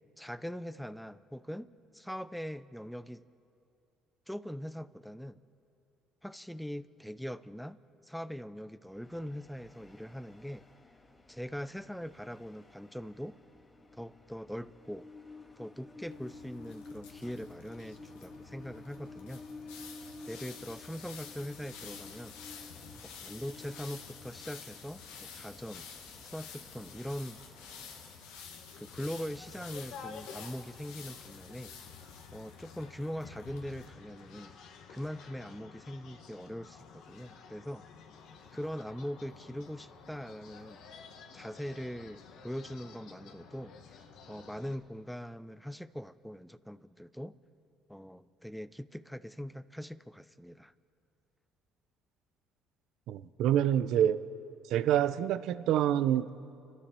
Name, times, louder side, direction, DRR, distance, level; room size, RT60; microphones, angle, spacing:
voice 1, 0.2-3.2 4.3-5.4 6.2-10.7 11.3-13.4 14.0-15.1 15.6-19.4 20.3-22.4 23.2-25.9 26.2-27.4 28.8-31.8 32.3-34.6 34.9-37.8 38.5-40.9 41.3-44.0 44.3-47.4 47.9-50.7, equal, ahead, 15 dB, 0.7 m, -42 dB
Train, 8.9-28.4, left 3 dB, 25° left, 1.7 m, -53 dB
sound 1, 16.1-33.9, left 6 dB, 90° left, 1.7 m, -50 dB
sound 2, 28.4-44.8, left 6 dB, 75° left, 1.6 m, -52 dB
voice 2, 53.1-54.2 54.7-56.3, right 10 dB, 70° right, 14 dB, 0.7 m, -27 dB
30.0 x 13.0 x 6.9 m, 2.7 s
supercardioid pair, 70°, 0 cm